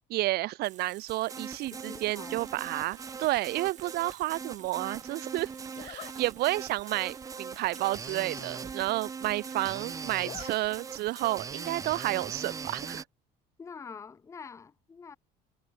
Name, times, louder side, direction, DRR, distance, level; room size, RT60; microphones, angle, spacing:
voice 1, 0.1-5.5 5.8-13.0, right 18 dB, 60° right, 1.1 m, -31 dB
Water tap faucet / Sink (filling or washing), 0.6-12.3, right 11 dB, 40° right, 5.4 m, -54 dB
sound 1, 1.1-13.0, right 5 dB, 20° right, 1.0 m, -41 dB
voice 2, 1.7-2.4 13.6-15.2, left 5 dB, 15° left, 0.8 m, -46 dB
Zipper (clothing), 3.8-4.2 5.7-6.1 6.7-6.9 7.2-7.3 7.5-7.6 7.9-8.5 8.9-9.0 9.1-9.7 10.0-10.5 10.9-11.0 12.3-12.7, left 12 dB, 40° left, 1.2 m, -48 dB
cardioid pair, 165°, 18 cm